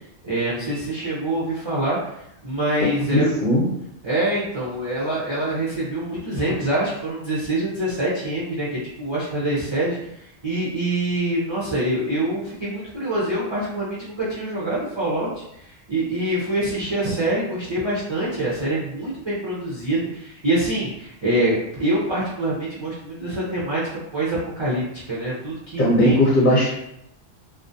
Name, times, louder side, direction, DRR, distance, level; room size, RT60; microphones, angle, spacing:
voice 1, 0.2-2.0 2.4-3.3 4.0-10.0 10.4-15.3 15.6-23.8 24.1-26.2, right 1 dB, 45° right, -9 dB, 0.3 m, -25 dB
voice 2, 2.8-3.7 25.8-26.7, left 1 dB, 50° left, -6 dB, 0.6 m, -18 dB
2.3 x 2.1 x 2.6 m, 0.79 s
omnidirectional pair, 1.3 m